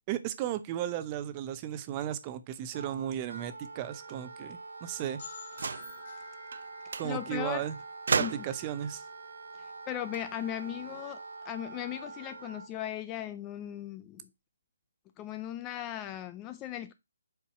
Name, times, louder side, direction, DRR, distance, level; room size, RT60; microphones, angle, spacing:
voice 1, 0.1-5.2 7.0-7.8 8.1-9.1, right 11 dB, 20° right, 0.7 m, -35 dB
Wind instrument woodwind instrument, 2.7-12.7, right 3 dB, 75° right, 1.8 m, -46 dB
sound 1, 5.2-8.8, left 5 dB, 40° left, 2.5 m, -50 dB
sound 2, 5.5-6.0 6.5-6.7 6.9-7.1 8.1-8.7 9.9-11.0, right 5 dB, 60° right, 0.6 m, -33 dB
voice 2, 7.0-7.6 8.2-8.4 9.6-14.3 15.2-16.9, left 12 dB, 15° left, 0.4 m, -38 dB
8.4 x 4.6 x 5.9 m
hypercardioid pair, 170°, 0 cm